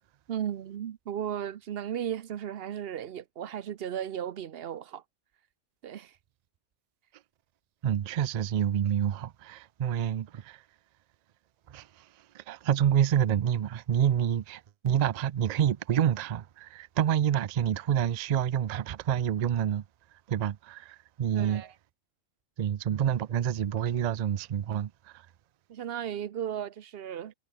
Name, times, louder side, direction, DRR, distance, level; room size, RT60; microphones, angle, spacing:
voice 1, 0.3-5.0 5.8-6.1 21.3-21.7 25.7-27.3, right 9 dB, 55° right, 0.8 m, -35 dB
voice 2, 7.8-10.6 11.7-11.9 12.3-19.8 20.3-21.6 22.6-24.9, right 9 dB, 75° right, 0.3 m, -28 dB
omnidirectional pair, 1.3 m